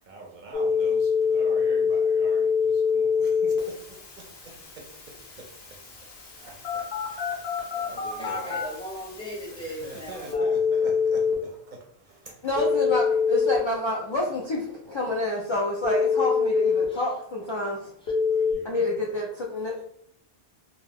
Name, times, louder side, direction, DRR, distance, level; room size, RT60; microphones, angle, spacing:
voice 1, 0.0-6.0 6.4-8.9 9.6-12.5 18.2-18.8, right 3 dB, 55° right, -1 dB, 0.6 m, -45 dB
Telephone, 0.5-11.3 12.6-13.6 15.8-16.8 18.1-18.5, left 6 dB, 80° left, 1.0 m, -26 dB
voice 2, 8.2-10.5 16.9-17.0 18.0-18.1, equal, 5° left, -4 dB, 0.7 m, -37 dB
voice 3, 12.4-17.9 18.6-19.9, left 2 dB, 50° left, -3 dB, 0.3 m, -28 dB
2.4 x 2.2 x 3.3 m, 0.66 s
omnidirectional pair, 1.0 m